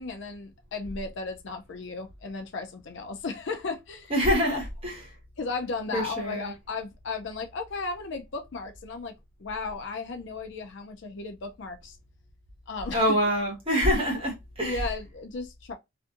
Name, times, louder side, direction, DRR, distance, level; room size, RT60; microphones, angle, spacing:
voice 1, 0.0-4.1 4.5-4.6 5.4-9.1 9.4-12.0 12.7-13.2 14.6-15.7, left 4 dB, 60° left, 0.4 m, -35 dB
voice 2, 4.1-5.0 5.9-6.5 12.9-14.8, equal, 25° right, 1.2 m, -25 dB
2.5 x 2.5 x 2.4 m
head